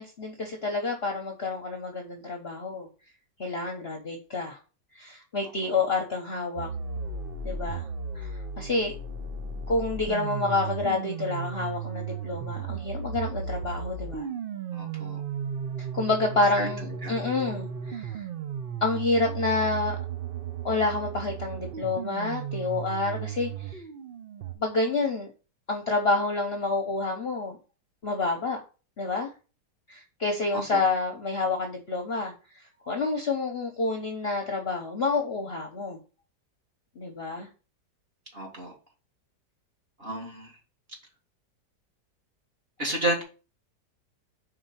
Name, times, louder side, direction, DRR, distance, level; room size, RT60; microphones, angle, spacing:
voice 1, 0.0-2.9 3.4-4.6 4.9-6.7 7.4-7.9 8.1-8.9 9.7-14.3 15.8-18.2 18.8-20.0 20.6-23.8 24.6-25.3 25.7-27.6 28.0-28.6 29.0-29.3 29.9-36.0 37.0-37.5, left 3 dB, 45° left, 2 dB, 0.9 m, -28 dB
sound 1, 6.6-24.5, right 6 dB, 75° right, 0.5 m, -35 dB
voice 2, 14.7-15.2 16.6-16.7 17.0-17.1 30.5-30.8 38.3-38.7 40.0-40.5 42.8-43.2, right 1 dB, 35° right, -1 dB, 1.9 m, -31 dB
5.0 x 3.8 x 5.6 m, 0.34 s
omnidirectional pair, 1.9 m